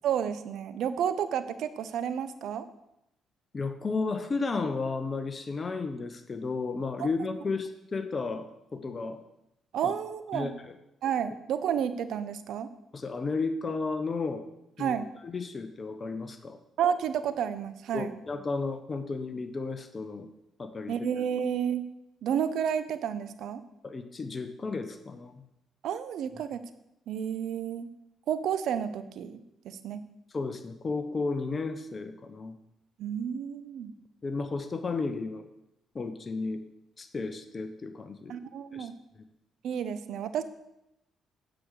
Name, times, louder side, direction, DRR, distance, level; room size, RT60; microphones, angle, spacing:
voice 1, 0.0-2.7 7.0-7.1 9.7-10.5 11.0-12.7 14.8-15.1 16.8-18.1 20.9-21.8 22.2-23.6 25.8-26.6 27.1-27.9 28.3-30.0 33.0-33.9 38.3-38.9 39.6-40.4, right 8 dB, 70° right, 12 dB, 0.7 m, -31 dB
voice 2, 3.5-9.2 9.8-9.9 10.3-10.8 12.9-14.5 14.8-15.0 15.2-16.6 17.9-20.3 20.6-21.0 23.8-25.3 30.3-32.5 34.2-35.5 35.9-36.6 37.0-38.4 38.7-38.9 39.1-39.2, left 4 dB, 35° left, 8 dB, 0.9 m, -33 dB
9.5 x 5.1 x 6.6 m, 0.84 s
supercardioid pair, 60°, 0 cm